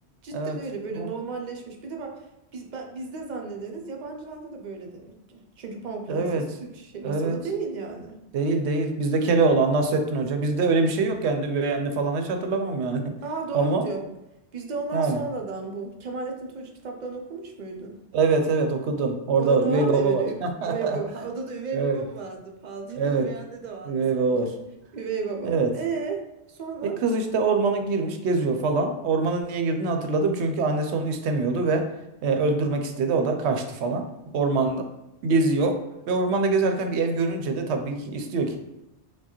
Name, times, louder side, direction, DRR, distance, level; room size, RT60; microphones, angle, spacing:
voice 1, 0.2-2.2 2.5-8.2 13.2-14.0 14.5-18.0 19.4-24.5 24.9-26.2 26.5-27.0, right 4 dB, 55° right, 2 dB, 0.5 m, -34 dB
voice 2, 6.1-6.4 7.0-7.4 8.3-13.0 13.5-13.9 14.9-15.2 18.1-21.0 21.7-22.0 23.0-23.3 23.9-24.5 25.4-25.7 27.0-31.8 32.2-34.0 34.3-34.8 35.2-35.7 36.1-38.6, right 3 dB, 80° right, 5 dB, 0.8 m, -24 dB
4.5 x 2.2 x 2.9 m, 0.92 s
omnidirectional pair, 1.1 m